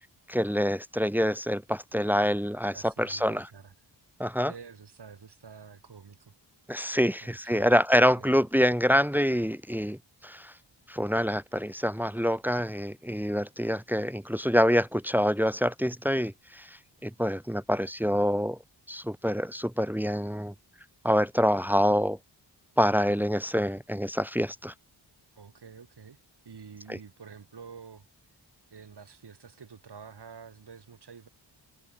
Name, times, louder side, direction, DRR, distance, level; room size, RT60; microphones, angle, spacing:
voice 1, 0.3-3.4 4.2-4.5 6.7-10.5 10.9-16.7 17.0-18.6 18.9-20.5 21.0-22.2 22.8-24.7 26.9-27.0, equal, 5° right, 0.8 m, -26 dB
voice 2, 2.7-3.7 4.4-6.3 7.2-7.8 8.1-8.4 25.4-26.2 26.4-28.1 28.7-31.3, right 6 dB, 65° right, 4.2 m, -48 dB
wide cardioid pair, 95°, 44 cm